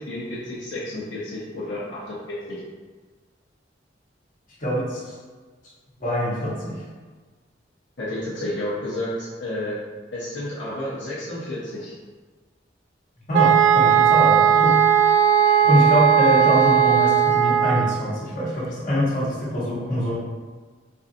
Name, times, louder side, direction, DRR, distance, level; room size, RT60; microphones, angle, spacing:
voice 1, 0.0-2.6 8.0-9.8 10.1-12.0, left 1 dB, 80° left, -8 dB, 0.8 m, -31 dB
voice 2, 4.6-5.1 6.0-6.8 13.3-14.8 15.4-20.1, equal, 45° left, -8 dB, 1.3 m, -24 dB
sound 1, 13.3-18.0, right 8 dB, 85° right, 0.3 m, -17 dB
4.5 x 2.5 x 2.6 m, 1.4 s
head